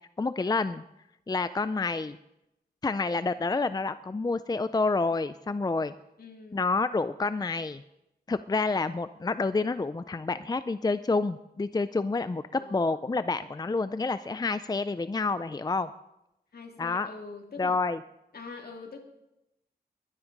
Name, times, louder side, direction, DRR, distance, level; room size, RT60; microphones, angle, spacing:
voice 1, 0.2-0.8 1.3-2.2 2.8-5.9 6.5-7.8 8.3-15.9 16.8-17.1 17.6-18.0, left 3 dB, 25° left, 13 dB, 0.4 m, -28 dB
voice 2, 6.2-6.7 12.5-13.0 16.5-17.8 18.3-19.0, left 4 dB, 70° left, 2 dB, 2.6 m, -44 dB
22.0 x 9.9 x 5.3 m, 0.87 s
wide cardioid pair, 110°, 17 cm